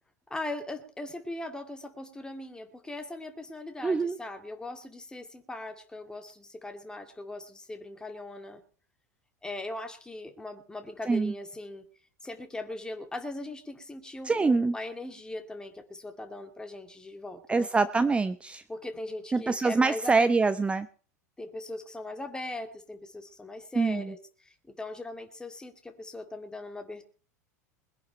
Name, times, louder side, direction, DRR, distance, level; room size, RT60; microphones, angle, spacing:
voice 1, 0.3-8.6 9.4-11.9 12.2-17.7 18.7-20.3 21.4-27.0, left 2 dB, 10° left, 7 dB, 2.2 m, -40 dB
voice 2, 3.8-4.2 11.1-11.3 14.3-14.7 17.5-18.6 19.3-20.9 23.8-24.1, right 4 dB, 10° right, 13 dB, 0.7 m, -25 dB
21.5 x 10.5 x 4.5 m, 0.42 s
figure-of-eight pair, 85°, 9 cm